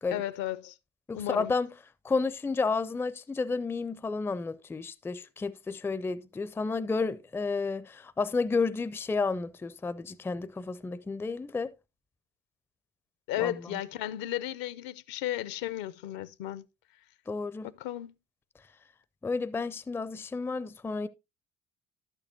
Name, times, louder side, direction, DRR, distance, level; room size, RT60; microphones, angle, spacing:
voice 1, 0.1-0.8 1.1-1.5 13.3-16.7 17.6-18.2, left 13 dB, 65° left, 0.6 m, -34 dB
voice 2, 1.1-1.7 2.0-11.7 13.4-13.8 17.3-17.7 19.2-21.1, left 4 dB, 5° left, 0.4 m, -31 dB
11.5 x 6.8 x 2.6 m
hypercardioid pair, 55°, 37 cm